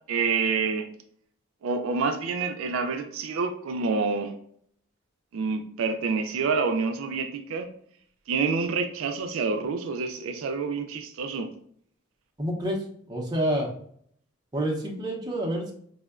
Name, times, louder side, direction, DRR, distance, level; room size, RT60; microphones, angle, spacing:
voice 1, 0.1-0.9 1.6-4.3 5.3-7.7 8.3-11.5, right 4 dB, 80° right, 6 dB, 0.3 m, -27 dB
voice 2, 12.4-13.7 14.5-15.7, right 1 dB, 20° right, -1 dB, 0.5 m, -28 dB
4.3 x 2.1 x 2.3 m, 0.62 s
head